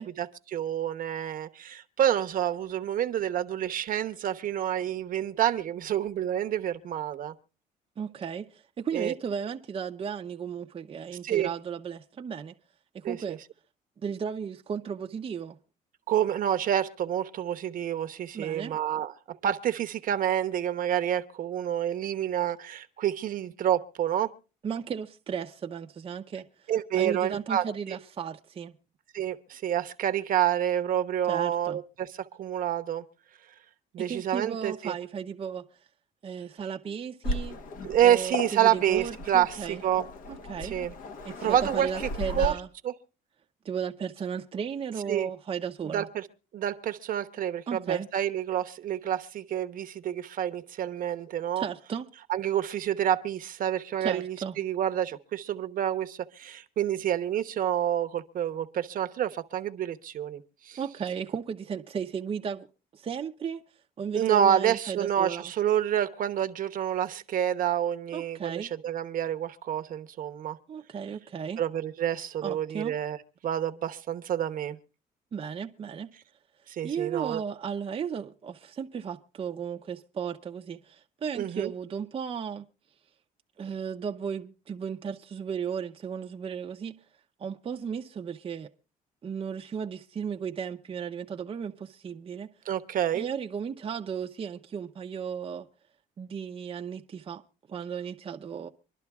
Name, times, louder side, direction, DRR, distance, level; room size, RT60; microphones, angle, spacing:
voice 1, 0.0-7.3 8.9-9.1 11.2-11.5 13.0-13.2 16.1-24.3 26.7-27.6 29.1-32.1 32.4-33.0 33.9-34.9 37.8-40.0 40.6-40.9 41.4-42.5 42.8-42.9 45.1-45.3 45.9-46.3 46.5-51.6 52.3-60.4 60.7-60.8 64.2-70.6 71.6-73.2 73.4-74.8 76.7-77.4 81.3-81.7 92.7-93.2, right 10 dB, 55° right, 0.9 m, -28 dB
voice 2, 8.0-12.5 12.9-13.4 14.0-15.6 18.3-18.7 24.6-28.7 31.3-31.8 34.0-35.7 36.2-37.6 38.0-39.8 40.3-40.8 41.2-42.7 43.6-46.1 47.7-48.1 51.6-52.1 54.0-54.6 60.8-62.7 62.9-63.6 64.0-65.5 68.1-68.7 70.7-71.6 72.4-72.9 75.3-76.1 76.8-82.7 83.6-86.9 87.4-88.7 89.2-92.5 93.1-95.7 96.2-97.4 97.7-98.7, right 7 dB, 35° right, 0.6 m, -35 dB
Waves surf, 37.2-42.5, left 1 dB, 55° left, 1.1 m, -36 dB
25.0 x 11.5 x 2.3 m
cardioid pair, 110°, 17 cm